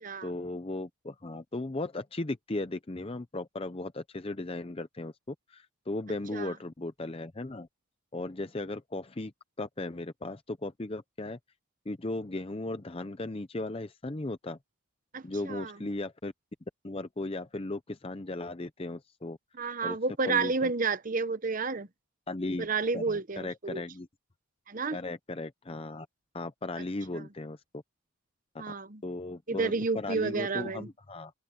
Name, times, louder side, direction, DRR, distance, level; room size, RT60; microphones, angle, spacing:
voice 1, 0.2-7.7 8.1-9.3 9.6-11.4 11.9-14.6 15.2-16.3 16.8-19.4 19.8-20.0 20.3-20.7 22.3-22.7 22.9-24.1 24.9-26.1 26.3-27.8 28.5-28.6 29.0-31.3, left 2 dB, 25° left, 0.6 m, -36 dB
voice 2, 15.1-15.7 19.5-21.9 22.6-23.8 24.7-25.0 27.1-27.2 28.6-29.0 29.5-30.9, right 4 dB, 40° right, 0.9 m, -31 dB
open air
head